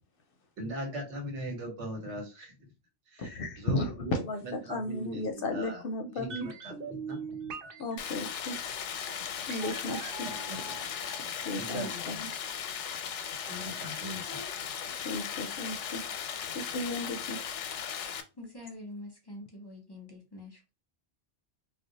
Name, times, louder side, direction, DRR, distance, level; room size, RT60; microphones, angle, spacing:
voice 1, 0.6-2.5 3.1-7.4 10.2-10.6 11.6-12.2 13.5-14.4, right 1 dB, 85° right, 2 dB, 1.4 m, -40 dB
voice 2, 3.2-6.5 7.8-8.6 9.5-10.3 10.5-12.4 14.3-14.5 15.0-16.0 16.5-17.6, left 2 dB, 60° left, 6 dB, 0.7 m, -35 dB
sound 1, 6.3-12.3 12.6-12.7, right 5 dB, 60° right, 0.7 m, -44 dB
Stream, 8.0-18.2, left 8 dB, 90° left, 0.9 m, -37 dB
voice 3, 18.3-20.7, left 1 dB, 25° left, 0 dB, 0.6 m, -45 dB
2.4 x 2.3 x 3.9 m, 0.30 s
omnidirectional pair, 1.2 m